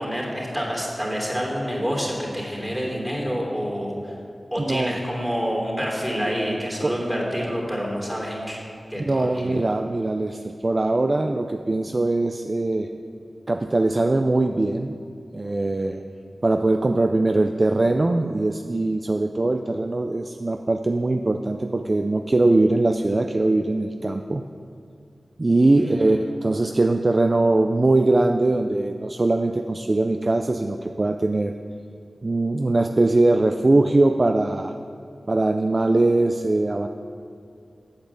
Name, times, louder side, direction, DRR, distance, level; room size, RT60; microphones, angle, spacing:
voice 1, 0.0-4.1 4.5-8.6 8.9-9.5 25.8-26.2, equal, 10° right, -2 dB, 3.1 m, -28 dB
voice 2, 9.0-12.9 13.5-14.9 15.3-16.0 16.4-24.4 25.4-31.5 32.2-34.7 35.3-36.9, right 2 dB, 40° right, 6 dB, 0.4 m, -21 dB
8.6 x 8.1 x 7.4 m, 2.3 s
wide cardioid pair, 90°, 0 cm